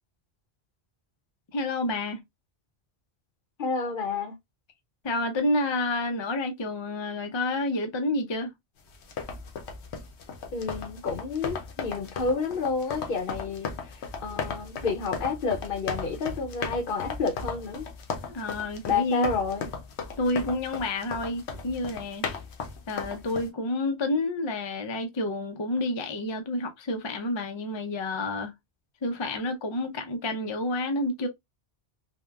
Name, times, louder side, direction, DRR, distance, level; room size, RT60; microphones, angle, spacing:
voice 1, 1.5-2.2 5.0-8.5 18.3-19.3 20.2-22.4 22.9-28.5 29.0-31.3, left 2 dB, 45° left, 0.3 m, -29 dB
voice 2, 3.6-4.3 10.5-17.9 18.9-19.7, left 4 dB, 60° left, 0.7 m, -30 dB
sound 1, 8.9-23.5, left 5 dB, 85° left, 0.9 m, -36 dB
3.3 x 2.1 x 2.2 m
omnidirectional pair, 1.1 m